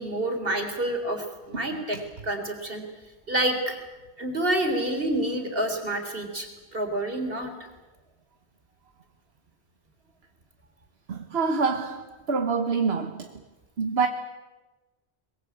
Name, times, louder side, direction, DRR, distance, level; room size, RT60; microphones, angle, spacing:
voice 1, 0.0-2.8 3.3-3.8 4.2-7.5, right 1 dB, 65° right, 4.0 m, -28 dB
voice 2, 11.1-13.3 13.8-14.1, right 5 dB, 80° right, 1.5 m, -26 dB
23.5 x 21.5 x 8.8 m
omnidirectional pair, 1.0 m